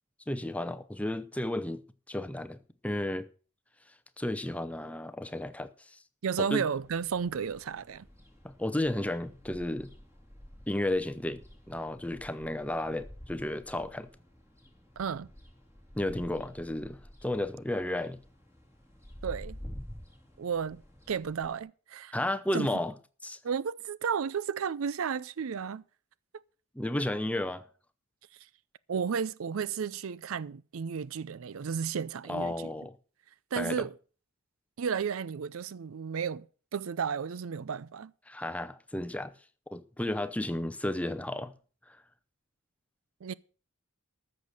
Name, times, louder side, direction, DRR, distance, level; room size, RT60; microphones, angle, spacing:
voice 1, 0.3-1.8 2.1-2.6 2.8-3.3 4.2-6.0 6.5-6.6 8.4-9.9 10.7-11.4 11.7-14.1 15.9-18.2 22.1-22.9 23.2-23.4 26.7-27.7 32.3-33.0 33.5-33.9 38.3-39.3 39.7-41.5 41.9-42.0, left 1 dB, 5° left, 0.6 m, -33 dB
voice 2, 6.2-8.1 15.0-15.3 19.2-19.6 20.4-20.8 21.1-22.1 22.5-22.7 23.4-25.8 28.9-32.5 33.5-33.9 34.8-38.1 43.2-43.3, right 6 dB, 75° right, 0.5 m, -33 dB
sound 1, 6.7-21.6, equal, 15° right, 3.0 m, -50 dB
13.5 x 6.6 x 6.6 m
head